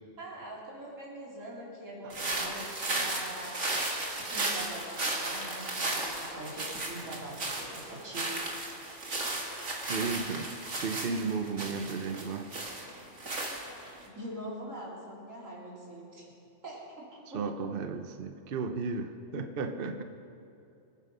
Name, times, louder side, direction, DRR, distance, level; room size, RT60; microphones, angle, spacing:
voice 1, 0.2-3.7 4.3-8.4 13.4-16.3 16.6-17.4, right 1 dB, 90° right, -4 dB, 3.8 m, -43 dB
sound 1, 2.1-14.0, right 2 dB, 65° right, 2.4 m, -35 dB
voice 2, 9.9-12.5 17.3-20.0, right 4 dB, 50° right, 7 dB, 0.9 m, -34 dB
24.5 x 9.7 x 5.5 m, 2.8 s
omnidirectional pair, 1.3 m